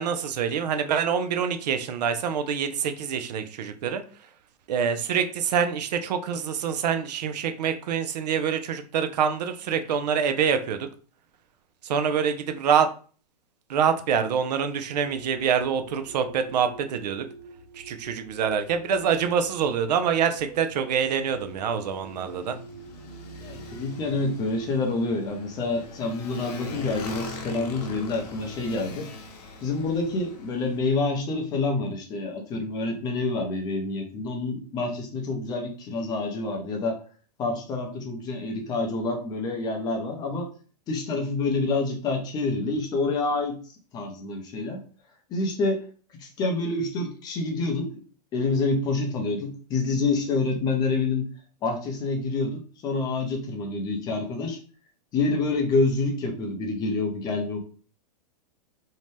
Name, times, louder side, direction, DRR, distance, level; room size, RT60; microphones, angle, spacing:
voice 1, 0.0-4.0 4.7-10.9 11.8-12.9 13.7-17.2 17.8-22.6, right 7 dB, 75° right, 8 dB, 0.5 m, -25 dB
sound 1, 14.9-26.0, right 4 dB, 45° right, 1.3 m, -47 dB
Motorcycle, 20.3-31.0, left 3 dB, 65° left, 0.8 m, -42 dB
voice 2, 23.4-29.1 29.6-37.0 37.4-40.5 40.9-44.8 45.3-45.8 46.2-47.9 48.3-51.3 51.6-54.6 55.1-57.6, left 3 dB, 20° left, 2 dB, 0.5 m, -27 dB
2.7 x 2.1 x 3.1 m, 0.40 s
hypercardioid pair, 150°, 21 cm